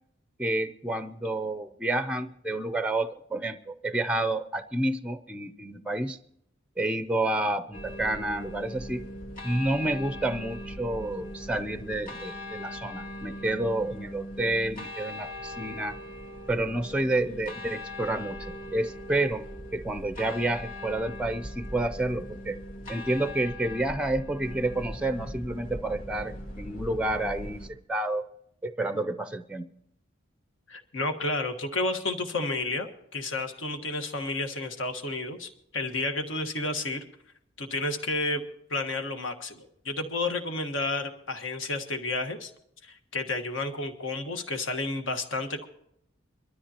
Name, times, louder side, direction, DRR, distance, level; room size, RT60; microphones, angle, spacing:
voice 1, 0.4-6.2 6.8-9.1 9.4-16.0 16.5-19.5 19.7-22.6 22.9-28.3 28.6-29.7, right 1 dB, 5° right, 11 dB, 0.4 m, -29 dB
sound 1, 7.7-27.7, left 1 dB, 40° left, 2.1 m, -40 dB
voice 2, 30.7-37.0 37.6-38.4 38.7-42.5 42.8-45.6, left 2 dB, 75° left, 6 dB, 1.5 m, -31 dB
23.0 x 13.0 x 2.9 m, 0.75 s
head